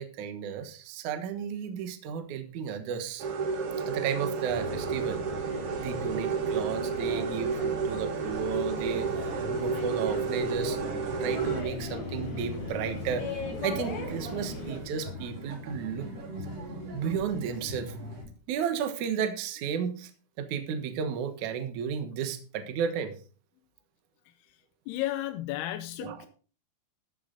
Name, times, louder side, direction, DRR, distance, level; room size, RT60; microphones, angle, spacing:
voice 1, 0.0-3.3 3.9-5.2 5.8-10.8 11.2-16.1 16.9-17.9 18.5-20.1 20.4-23.2 26.0-26.3, right 7 dB, 60° right, 8 dB, 2.3 m, -33 dB
sound 1, 3.2-11.6, right 5 dB, 85° right, 1.2 m, -31 dB
sound 2, 4.5-14.8, left 3 dB, 65° left, 4.7 m, -39 dB
sound 3, 8.8-18.2, equal, 40° right, 4.0 m, -41 dB
voice 2, 24.9-26.3, left 14 dB, 85° left, 8 dB, 2.7 m, -33 dB
13.5 x 8.0 x 3.8 m, 0.38 s
omnidirectional pair, 4.6 m